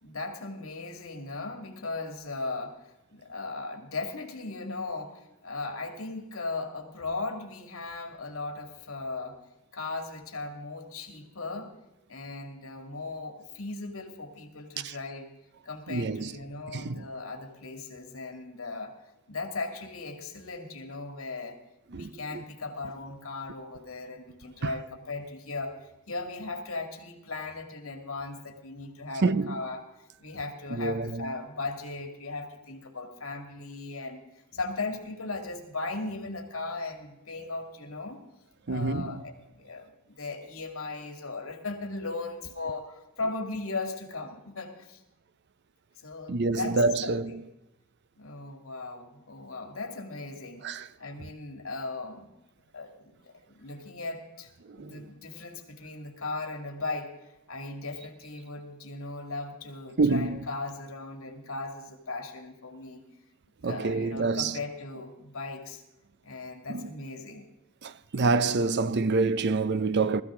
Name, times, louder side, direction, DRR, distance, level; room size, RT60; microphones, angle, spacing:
voice 1, 0.0-9.4 9.7-11.7 12.1-15.3 15.6-19.0 19.3-21.6 21.9-34.2 34.5-38.2 38.7-45.0 46.0-47.4 48.2-52.3 52.7-57.1 57.5-63.0 63.6-65.8 66.2-67.5, left 3 dB, 75° left, 2.3 m, -37 dB
voice 2, 15.9-16.3 16.7-17.1 21.9-22.1 29.2-29.6 30.7-31.3 38.7-39.2 46.3-47.4 50.6-50.9 54.8-55.0 60.0-60.4 63.6-64.6 66.7-66.9 67.8-70.2, right 3 dB, 55° right, 0.6 m, -27 dB
19.5 x 14.0 x 3.8 m
head